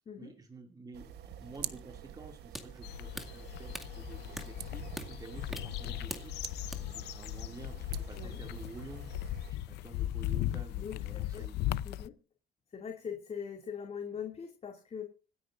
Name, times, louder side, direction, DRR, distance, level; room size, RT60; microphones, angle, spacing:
voice 1, 0.2-6.4 6.8-9.1 9.5-11.6, right 3 dB, 20° right, 4 dB, 2.4 m, -50 dB
sound 1, 0.9-9.5, right 11 dB, 75° right, 1.1 m, -46 dB
sound 2, 1.4-6.8, equal, ahead, 2.2 m, -46 dB
sound 3, 2.8-12.1, left 14 dB, 80° left, 0.6 m, -38 dB
voice 2, 10.7-11.5 11.8-12.2 12.7-15.0, left 7 dB, 40° left, 4 dB, 2.5 m, -42 dB
26.0 x 10.0 x 2.5 m, 0.33 s
cardioid pair, 110°, 17 cm